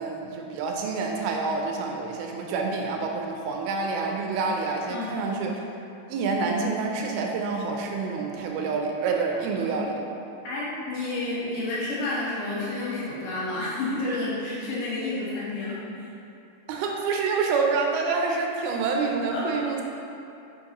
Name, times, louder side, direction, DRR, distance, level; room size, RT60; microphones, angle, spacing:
voice 1, 0.0-5.6 6.1-9.9 16.7-19.8, right 4 dB, 85° right, 1 dB, 2.5 m, -27 dB
voice 2, 4.9-5.3 10.4-16.1 19.3-19.6, left 2 dB, 70° left, -7 dB, 2.7 m, -30 dB
6.3 x 5.8 x 2.9 m, 2.7 s
omnidirectional pair, 4.4 m